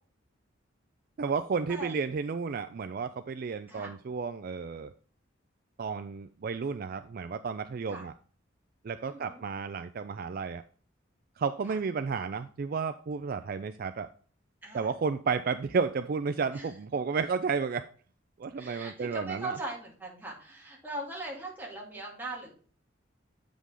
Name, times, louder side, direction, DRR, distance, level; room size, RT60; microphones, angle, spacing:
voice 1, 1.2-4.9 5.8-8.1 8.8-10.6 11.4-14.1 14.7-17.9 18.4-19.6, right 5 dB, 50° right, 10 dB, 0.4 m, -32 dB
voice 2, 9.1-9.4 11.6-11.8 14.6-14.9 16.5-16.7 18.6-22.5, right 2 dB, 10° right, -3 dB, 2.5 m, -40 dB
8.1 x 5.2 x 3.7 m, 0.42 s
head